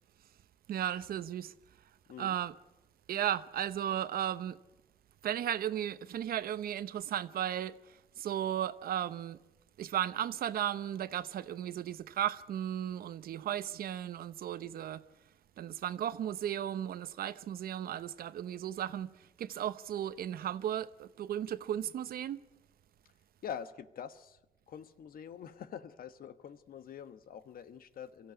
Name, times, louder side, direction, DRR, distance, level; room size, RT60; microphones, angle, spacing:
voice 1, 0.7-1.5 2.2-2.6 3.1-4.6 5.2-7.8 8.2-9.4 9.8-15.0 15.6-22.4, right 10 dB, 80° right, 0.8 m, -35 dB
voice 2, 23.4-24.4 24.7-28.3, left 8 dB, 75° left, 1.2 m, -45 dB
23.0 x 15.0 x 9.6 m
cardioid pair, 85°, 15 cm